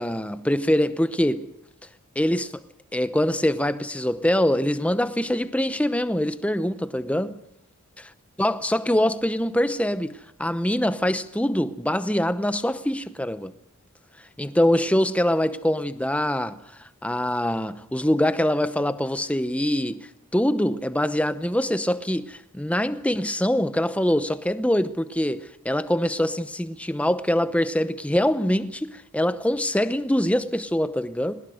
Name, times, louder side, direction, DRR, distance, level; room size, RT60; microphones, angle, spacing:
voice 1, 0.0-1.5 2.2-2.6 2.9-7.4 8.4-13.5 14.4-16.6 17.0-31.4, left 1 dB, 5° left, 0.8 m, -24 dB
21.5 x 20.0 x 6.5 m
head